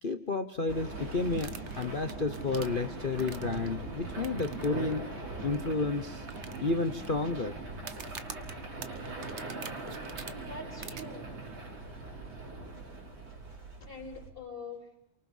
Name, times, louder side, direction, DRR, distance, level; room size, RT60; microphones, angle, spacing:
voice 1, 0.0-5.1 5.4-6.3 6.6-7.6, left 3 dB, 55° left, 6 dB, 0.5 m, -31 dB
sound 1, 0.7-14.3, right 2 dB, 60° right, 4.8 m, -41 dB
sound 2, 1.3-3.7 4.2-4.6 4.9-5.0 5.5-5.6 6.3-7.1 7.8-10.3 10.8-11.0, right 6 dB, 45° right, 1.0 m, -44 dB
voice 2, 10.4-11.4 13.8-14.9, left 3 dB, 25° left, 2 dB, 4.0 m, -44 dB
28.0 x 24.0 x 5.5 m, 0.85 s
omnidirectional pair, 2.4 m